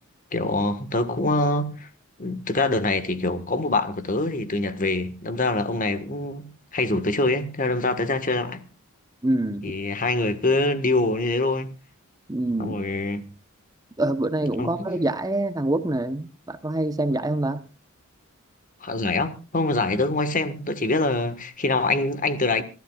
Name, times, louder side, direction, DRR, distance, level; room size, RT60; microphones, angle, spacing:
voice 1, 0.3-1.9 2.2-8.6 9.6-11.7 12.6-13.2 14.6-14.9 18.8-22.6, left 2 dB, 40° left, 1.5 m, -24 dB
voice 2, 9.2-9.7 12.3-12.8 14.0-17.6, right 1 dB, 15° right, 0.9 m, -25 dB
27.0 x 13.0 x 2.4 m
head